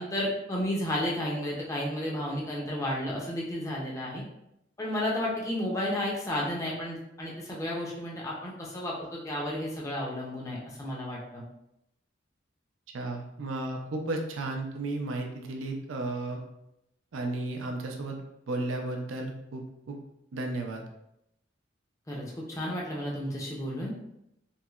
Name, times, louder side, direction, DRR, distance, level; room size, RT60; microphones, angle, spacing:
voice 1, 0.0-4.2 4.8-11.4 22.1-23.9, left 1 dB, 15° left, -4 dB, 0.4 m, -32 dB
voice 2, 12.9-16.4 17.1-18.2 18.5-20.0 20.3-20.8, right 2 dB, 80° right, 3 dB, 0.4 m, -34 dB
3.1 x 2.8 x 2.3 m, 0.82 s
head